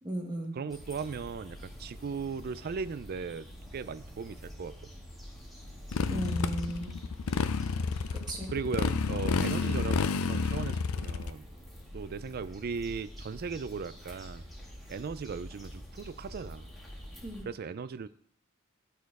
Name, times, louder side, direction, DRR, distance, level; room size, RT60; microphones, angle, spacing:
voice 1, 0.0-0.6 6.1-7.0 8.1-8.5 9.3-9.5 17.2-17.5, right 1 dB, 20° right, -1 dB, 1.6 m, -36 dB
voice 2, 0.5-3.5 3.7-4.8 8.5-11.5 11.9-14.4 14.9-16.7 17.5-18.1, right 5 dB, 45° right, 15 dB, 0.4 m, -37 dB
sound 1, 0.7-17.4, equal, ahead, 1.9 m, -47 dB
Motorcycle, 5.9-11.3, left 4 dB, 80° left, 0.5 m, -30 dB
12.5 x 4.4 x 4.7 m, 0.66 s
head